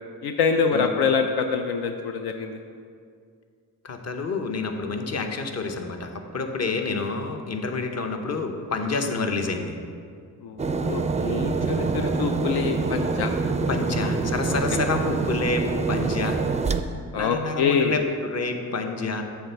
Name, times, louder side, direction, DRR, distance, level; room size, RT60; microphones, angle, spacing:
voice 1, 0.2-2.6 10.4-13.3 17.1-18.0, left 5 dB, 75° left, 5 dB, 0.6 m, -25 dB
voice 2, 3.8-9.7 11.6-12.0 13.7-16.4 17.1-19.2, left 3 dB, 40° left, 5 dB, 0.9 m, -28 dB
sound 1, 10.6-16.8, right 4 dB, 20° right, 0.4 m, -26 dB
8.7 x 3.4 x 6.6 m, 2.2 s
cardioid pair, 70°, 39 cm